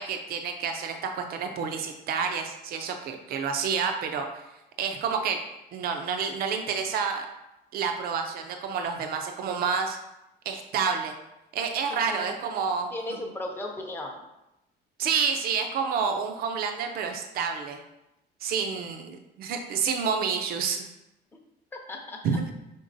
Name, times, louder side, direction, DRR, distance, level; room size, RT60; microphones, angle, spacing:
voice 1, 0.0-4.4 4.8-5.4 5.7-7.3 7.7-10.0 10.5-11.1 11.5-12.9 15.0-17.8 18.4-20.8 22.2-22.5, right 6 dB, 55° right, 4 dB, 0.5 m, -29 dB
voice 2, 11.9-12.3 12.9-14.2 21.7-22.2, left 1 dB, 10° left, 0 dB, 0.6 m, -36 dB
5.2 x 3.8 x 2.6 m, 0.90 s
cardioid pair, 140°, 19 cm